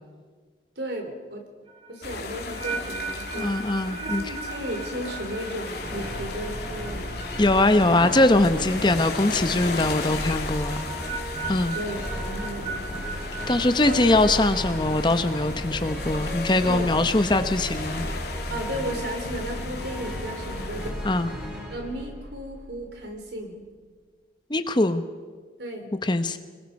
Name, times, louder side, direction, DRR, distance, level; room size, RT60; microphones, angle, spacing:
voice 1, 0.8-1.4 1.9-3.6 3.9-7.2 11.7-13.2 13.8-14.2 16.6-17.1 18.5-21.0 21.7-23.6 25.6-25.9, equal, 70° right, 3 dB, 4.0 m, -35 dB
sound 1, 1.7-8.8 9.1-9.5 10.7-15.3, right 5 dB, 25° right, 1.4 m, -38 dB
sound 2, 2.0-20.9, left 3 dB, 60° left, 2.7 m, -36 dB
voice 2, 3.4-4.2 7.4-10.8 11.5-11.7 13.5-18.1 21.0-21.3 24.5-25.0 26.0-26.4, left 2 dB, 25° left, 9 dB, 0.9 m, -22 dB
sound 3, 5.7-23.2, equal, 10° right, 6.0 m, -35 dB
26.0 x 21.0 x 5.4 m, 1.5 s
head